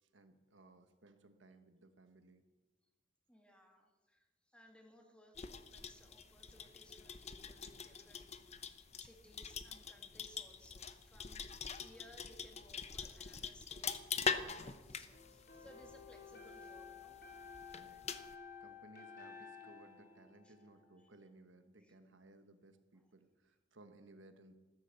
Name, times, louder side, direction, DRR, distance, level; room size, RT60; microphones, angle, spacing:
voice 1, 0.0-2.4 15.0-15.1 17.7-18.1 18.6-24.5, right 2 dB, 70° right, 8 dB, 1.3 m, -61 dB
voice 2, 3.3-8.7 9.0-17.2 20.4-20.5 21.8-21.9 22.9-23.1, equal, 5° left, 3 dB, 2.0 m, -63 dB
sound 1, 5.3-18.3, left 6 dB, 35° left, 0.8 m, -44 dB
sound 2, 15.1-21.1, left 5 dB, 55° left, 4.4 m, -54 dB
15.0 x 13.5 x 6.9 m, 1.2 s
head